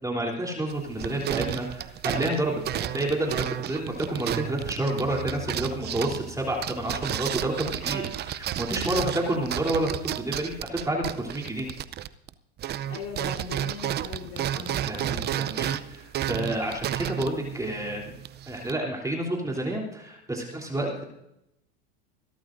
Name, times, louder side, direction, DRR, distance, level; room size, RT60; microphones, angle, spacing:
voice 1, 0.0-11.7 14.8-18.0 18.5-21.0, right 1 dB, 10° right, 0 dB, 3.3 m, -29 dB
sound 1, 0.7-12.3 12.6-18.7, right 11 dB, 30° right, 0.6 m, -32 dB
voice 2, 0.9-1.6 8.9-9.5 12.9-15.4 17.1-17.5 20.8-21.0, left 6 dB, 45° left, 1 dB, 4.1 m, -42 dB
Bass guitar, 5.0-11.2, left 1 dB, 75° left, 3.7 m, -46 dB
26.0 x 12.5 x 2.6 m, 0.82 s
hypercardioid pair, 105°, 34 cm